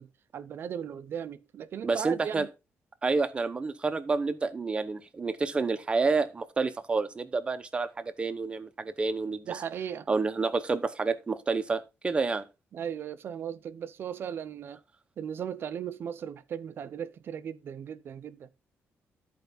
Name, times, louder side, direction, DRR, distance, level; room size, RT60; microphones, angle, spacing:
voice 1, 0.0-2.5 9.5-10.1 12.7-14.8 15.2-18.5, right 8 dB, 50° right, 0.7 m, -37 dB
voice 2, 1.8-2.5 3.0-9.5 10.1-12.4, right 4 dB, 20° right, 0.8 m, -29 dB
13.0 x 4.6 x 4.0 m
cardioid pair, 160°, 5 cm